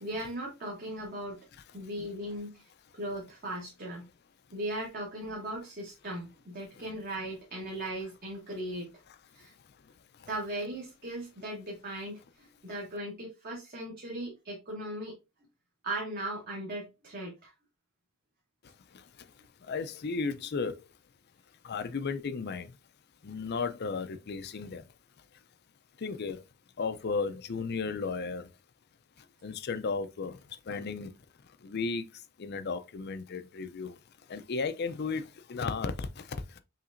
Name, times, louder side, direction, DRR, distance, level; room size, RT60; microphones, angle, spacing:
voice 1, 0.0-1.4 1.7-2.6 2.9-4.0 4.5-8.9 9.3-9.5 10.3-15.2 15.8-17.5, right 1 dB, 40° right, 1.1 m, -38 dB
voice 2, 19.7-20.8 21.6-22.7 23.2-24.8 26.0-26.4 26.8-28.5 29.4-30.4 30.7-31.1 31.6-32.1 32.4-33.9 34.3-36.6, left 4 dB, 45° left, 0.4 m, -34 dB
5.7 x 3.2 x 2.5 m
head